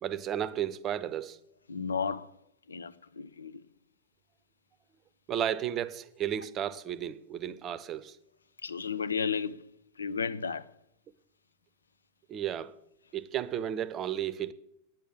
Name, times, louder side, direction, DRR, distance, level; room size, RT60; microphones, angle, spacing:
voice 1, 0.0-1.4 5.3-8.2 12.3-12.7 13.1-14.5, right 10 dB, 30° right, 0.7 m, -33 dB
voice 2, 1.7-2.3 2.7-3.6 8.6-9.7 10.0-10.7, left 6 dB, 75° left, 0.5 m, -33 dB
10.5 x 8.9 x 7.5 m
figure-of-eight pair, 90°, 0 cm